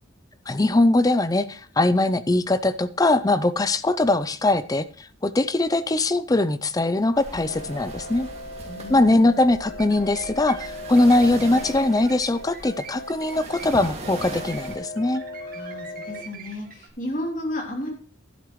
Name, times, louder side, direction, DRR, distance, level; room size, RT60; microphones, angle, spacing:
voice 1, 0.5-8.3 8.9-15.2, left 2 dB, 20° left, 14 dB, 0.5 m, -21 dB
sound 1, 7.2-14.8, right 2 dB, 30° right, 2.1 m, -40 dB
sound 2, 7.5-16.2, left 2 dB, 60° left, 1.1 m, -38 dB
voice 2, 8.7-9.3 15.4-17.9, left 1 dB, 40° left, 0 dB, 2.9 m, -33 dB
sound 3, 9.7-16.9, right 6 dB, 45° right, 1.8 m, -45 dB
12.5 x 11.5 x 3.1 m, 0.43 s
head